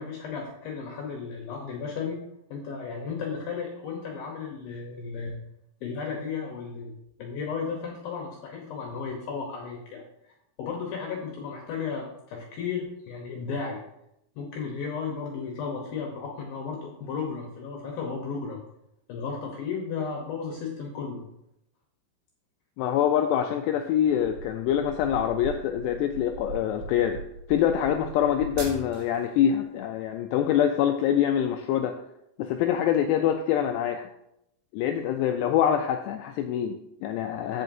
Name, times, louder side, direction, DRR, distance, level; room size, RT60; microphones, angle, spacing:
voice 1, 0.0-2.2 2.5-5.4 5.8-6.9 7.2-10.0 10.6-13.8 14.4-18.6 19.1-21.2, left 5 dB, 70° left, 0 dB, 2.3 m, -34 dB
voice 2, 22.8-27.2 27.5-32.0 32.4-34.1 34.7-37.6, left 9 dB, 90° left, 5 dB, 2.4 m, -25 dB
sound 1, 24.1-29.3, right 3 dB, 75° right, 4.5 m, -39 dB
15.0 x 5.4 x 2.7 m, 0.81 s
omnidirectional pair, 5.4 m